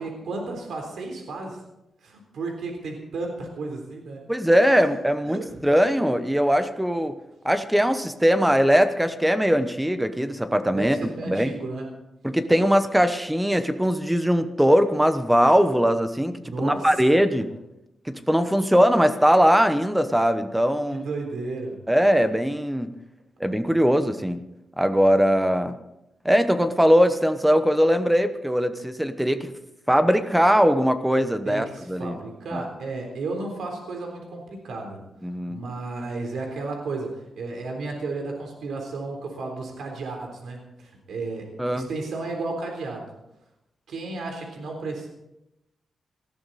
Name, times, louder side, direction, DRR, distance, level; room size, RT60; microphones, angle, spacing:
voice 1, 0.0-1.6 2.0-4.2 4.8-5.0 5.3-5.6 10.7-11.9 16.4-17.1 20.9-21.8 31.4-35.0 35.5-41.5 41.7-43.1 43.9-45.1, right 3 dB, 85° right, 2 dB, 3.7 m, -33 dB
voice 2, 4.3-7.1 7.4-11.0 11.3-11.5 12.2-17.5 18.1-21.1 21.9-22.9 23.4-24.4 24.8-25.7 26.2-29.5 29.9-32.2 32.5-32.6 35.2-35.6 41.6-41.9, equal, 5° right, 10 dB, 1.0 m, -20 dB
19.5 x 14.5 x 4.2 m, 0.88 s
wide cardioid pair, 155°, 0 cm